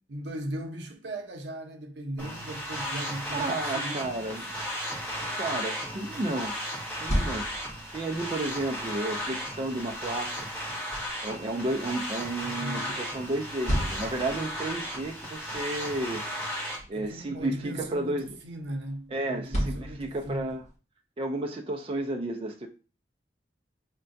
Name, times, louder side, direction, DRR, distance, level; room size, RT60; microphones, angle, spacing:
voice 1, 0.1-4.5 12.4-13.0 16.9-20.6, right 1 dB, 80° right, 0.7 m, -38 dB
sound 1, 2.2-16.8, equal, 10° left, 1.3 m, -35 dB
voice 2, 3.3-4.5 5.4-6.6 7.0-10.5 11.2-16.2 16.9-18.3 19.1-20.6 21.2-22.7, right 2 dB, 30° right, 0.3 m, -32 dB
sound 2, 6.8-20.8, equal, 40° left, 1.3 m, -37 dB
5.4 x 2.2 x 2.5 m
head